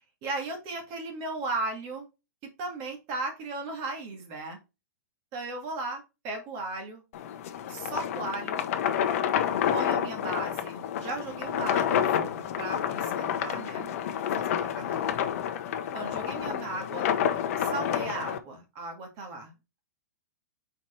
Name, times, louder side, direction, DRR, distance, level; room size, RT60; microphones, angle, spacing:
voice 1, 0.2-2.1 2.4-4.6 5.3-7.0 7.7-8.6 9.7-15.2 15.9-17.1 17.6-19.5, right 2 dB, 40° right, 3 dB, 2.1 m, -36 dB
sound 1, 7.1-18.4, left 9 dB, 55° left, 0.9 m, -29 dB
4.7 x 4.5 x 4.4 m, 0.28 s
hypercardioid pair, 135°, 9 cm